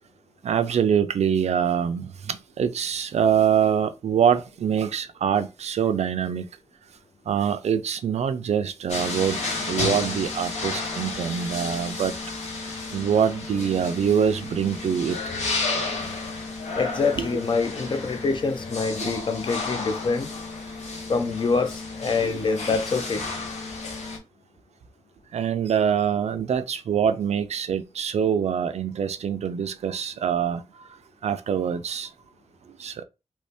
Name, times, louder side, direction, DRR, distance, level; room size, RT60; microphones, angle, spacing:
voice 1, 0.4-6.5 7.3-9.4 9.7-12.1 12.9-15.2 17.2-17.3 19.0-19.1 22.2-22.4 25.3-30.6 31.2-32.1 32.8-33.0, right 8 dB, 75° right, 0.4 m, -24 dB
sound 1, 8.9-24.2, left 3 dB, 85° left, 1.3 m, -32 dB
voice 2, 16.8-20.3 21.1-23.2, left 4 dB, 45° left, 0.5 m, -25 dB
3.0 x 2.7 x 3.3 m
wide cardioid pair, 165°, 11 cm